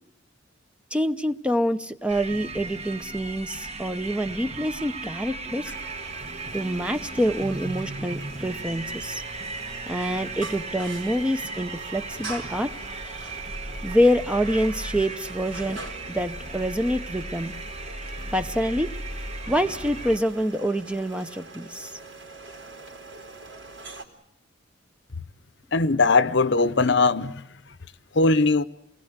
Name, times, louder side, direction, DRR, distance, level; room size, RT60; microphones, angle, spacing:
voice 1, 0.9-5.7 6.5-9.2 9.9-12.7 13.8-15.8 16.1-17.5 18.3-18.9 19.5-21.9, equal, 5° right, 0.8 m, -26 dB
sound 1, 2.1-20.2, right 2 dB, 35° right, 1.6 m, -36 dB
sound 2, 5.6-24.0, right 2 dB, 70° right, 4.0 m, -43 dB
voice 2, 25.7-27.4 28.1-28.6, left 3 dB, 60° left, 0.9 m, -20 dB
28.5 x 20.0 x 8.2 m
head